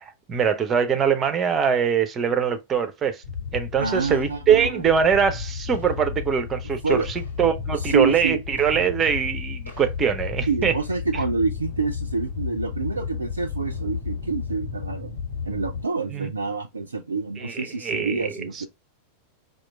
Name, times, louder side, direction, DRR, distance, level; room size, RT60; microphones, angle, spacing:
voice 1, 0.3-3.2 3.5-10.7 16.1-16.3 17.4-18.4, right 7 dB, 25° right, 0.7 m, -23 dB
sound 1, 3.2-15.8, left 6 dB, 75° left, 1.3 m, -33 dB
voice 2, 3.8-4.8 6.8-7.1 7.8-8.4 10.5-15.1 15.5-18.7, right 4 dB, 75° right, 0.4 m, -27 dB
4.4 x 2.4 x 2.2 m
figure-of-eight pair, 90°, 0 cm